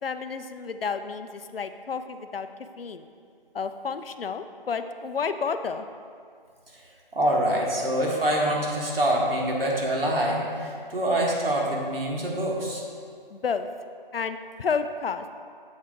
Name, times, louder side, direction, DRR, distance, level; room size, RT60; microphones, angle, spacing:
voice 1, 0.0-2.5 2.8-3.1 3.5-5.9 13.3-13.7 14.1-15.2, left 5 dB, 75° left, 10 dB, 0.5 m, -31 dB
voice 2, 7.1-12.8, right 1 dB, 75° right, -2 dB, 1.5 m, -25 dB
7.2 x 4.6 x 3.5 m, 2.2 s
figure-of-eight pair, 165°, 29 cm